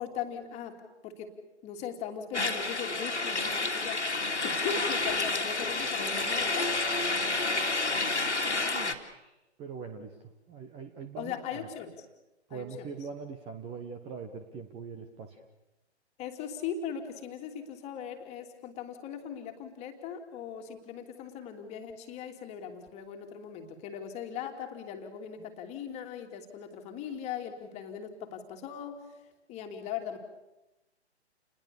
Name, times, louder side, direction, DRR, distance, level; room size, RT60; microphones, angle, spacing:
voice 1, 0.0-1.3 1.6-4.2 4.4-6.8 11.2-12.1 12.5-12.9 16.2-29.2 29.5-30.2, left 8 dB, 20° left, 5 dB, 2.7 m, -39 dB
sound 1, 2.3-8.9, left 3 dB, 85° left, 2.8 m, -29 dB
voice 2, 8.7-11.6 12.5-15.4, right 5 dB, 15° right, 7 dB, 1.5 m, -42 dB
30.0 x 21.0 x 6.9 m, 0.97 s
figure-of-eight pair, 130°, 34 cm